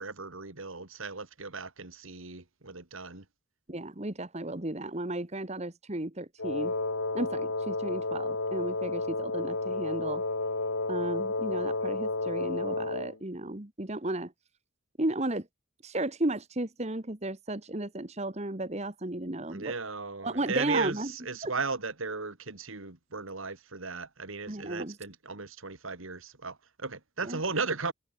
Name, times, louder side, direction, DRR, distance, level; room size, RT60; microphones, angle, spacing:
voice 1, 0.0-3.2 19.5-27.9, right 4 dB, 70° right, 2.3 m, -36 dB
voice 2, 3.7-6.7 7.1-10.2 10.9-14.3 15.0-15.5 15.8-19.7 20.2-21.1 21.4-21.5 24.5-25.0 27.2-27.4, right 1 dB, 30° right, 1.4 m, -34 dB
Wind instrument woodwind instrument, 6.4-13.2, left 2 dB, 75° left, 3.4 m, -31 dB
head